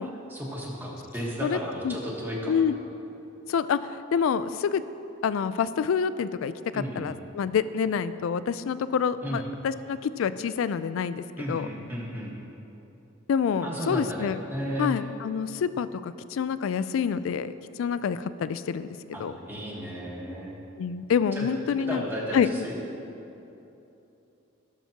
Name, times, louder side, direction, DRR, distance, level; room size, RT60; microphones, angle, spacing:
voice 1, 0.0-2.5 6.7-7.1 9.2-9.4 11.4-12.3 13.6-15.0 19.1-20.6 21.3-21.5 21.8-22.8, equal, 10° right, -3 dB, 1.3 m, -34 dB
voice 2, 3.5-3.8 4.1-4.8 5.2-11.7 13.3-14.4 14.8-17.5 17.8-19.3 20.8-22.0 22.3-22.5, left 7 dB, 80° left, 14 dB, 0.3 m, -27 dB
15.5 x 7.1 x 2.9 m, 2.9 s
head